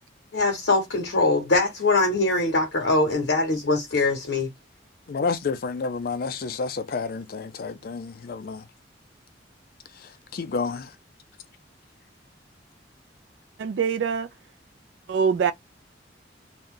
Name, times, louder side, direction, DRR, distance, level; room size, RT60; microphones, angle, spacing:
voice 1, 0.3-4.5, left 2 dB, 75° left, 0.8 m, -22 dB
voice 2, 5.1-8.6 10.3-10.9, left 4 dB, 55° left, 0.4 m, -30 dB
voice 3, 13.6-14.3 15.1-15.5, right 6 dB, 75° right, 0.3 m, -23 dB
2.6 x 2.2 x 3.7 m
head